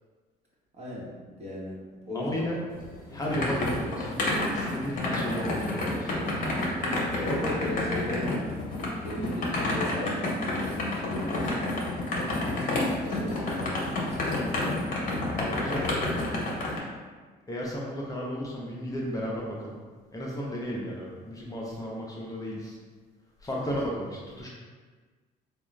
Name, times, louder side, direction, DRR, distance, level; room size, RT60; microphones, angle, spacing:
voice 1, 0.8-1.1 1.4-1.8 2.0-2.6 7.2-8.5 9.0-11.8 13.0-14.2 23.5-23.6, left 1 dB, 40° right, -5 dB, 1.1 m, -36 dB
voice 2, 2.1-2.6 3.1-6.9 15.4-16.0 17.5-19.8 20.1-22.8 23.4-24.5, equal, 20° left, -4 dB, 0.6 m, -34 dB
sound 1, 2.8-16.8, left 2 dB, 55° left, 0.9 m, -29 dB
3.6 x 2.3 x 3.1 m, 1.5 s
cardioid pair, 110°, 17 cm